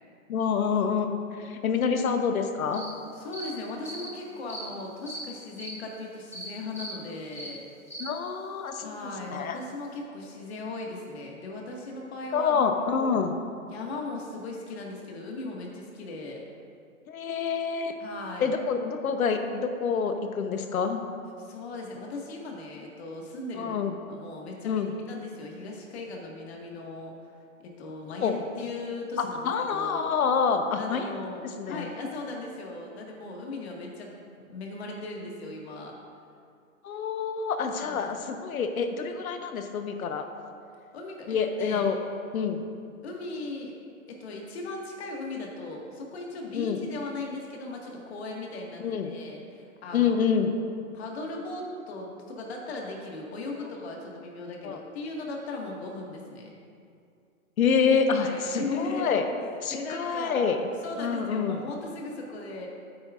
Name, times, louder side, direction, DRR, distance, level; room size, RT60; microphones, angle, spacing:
voice 1, 0.3-2.9 8.0-9.6 12.3-13.4 17.1-17.9 18.4-21.0 23.5-24.0 24.6-24.9 28.2-28.3 29.2-31.1 31.4-31.9 36.8-40.3 41.3-42.0 42.3-42.6 46.5-46.8 48.8-49.1 49.9-50.5 54.6-54.8 57.6-59.2 59.6-60.7 61.0-61.6, left 6 dB, 75° left, 6 dB, 1.0 m, -27 dB
sound 1, 2.7-2.9 3.3-3.5 3.8-4.1 4.5-4.6 5.1-5.2 5.6-5.7 6.3-6.5 6.7-6.9 7.3-7.5 7.9-8.1, right 1 dB, 10° left, 0.4 m, -39 dB
voice 2, 3.2-7.7 8.8-13.1 13.7-16.4 18.0-18.5 21.4-23.8 24.1-27.1 27.6-30.1 30.7-34.1 34.4-36.0 37.8-38.2 40.9-41.9 43.0-43.7 44.1-50.2 50.9-56.5 58.2-60.5 60.8-62.7, left 2 dB, 45° left, -1 dB, 1.8 m, -38 dB
13.0 x 8.8 x 2.5 m, 2.3 s
hypercardioid pair, 165°, 43 cm